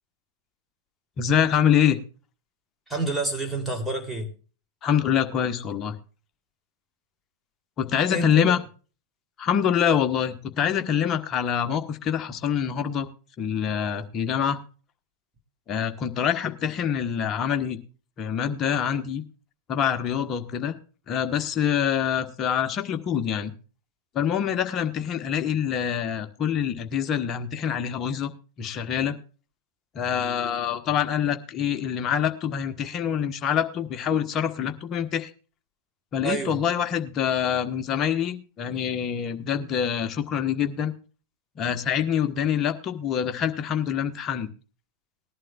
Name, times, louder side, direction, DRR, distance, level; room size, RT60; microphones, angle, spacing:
voice 1, 1.2-2.0 4.8-6.0 7.8-8.6 9.4-13.1 13.4-14.6 15.7-17.8 18.2-19.2 19.7-20.8 21.1-23.5 24.1-28.3 28.6-29.2 29.9-35.3 36.1-40.9 41.6-44.5, left 8 dB, 30° left, 8 dB, 1.2 m, -25 dB
voice 2, 2.9-4.3 8.1-8.5 36.2-36.6, right 2 dB, 5° right, 2 dB, 3.1 m, -28 dB
19.5 x 11.0 x 2.4 m, 0.36 s
figure-of-eight pair, 90°, 0 cm